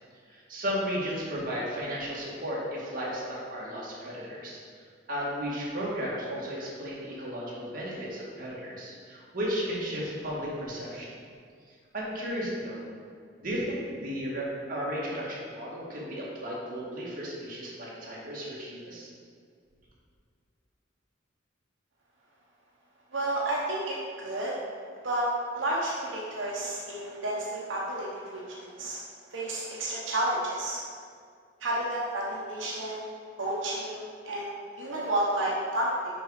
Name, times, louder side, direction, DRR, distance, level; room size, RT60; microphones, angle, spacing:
voice 1, 0.3-4.6 5.1-11.1 11.9-12.8 13.4-19.1, equal, 50° right, -6 dB, 1.9 m, -34 dB
voice 2, 23.1-24.5 25.0-25.3 25.5-29.0 29.3-30.8 31.6-33.1 33.4-35.9, right 1 dB, 85° right, -4 dB, 1.0 m, -31 dB
6.2 x 5.3 x 4.8 m, 2.2 s
head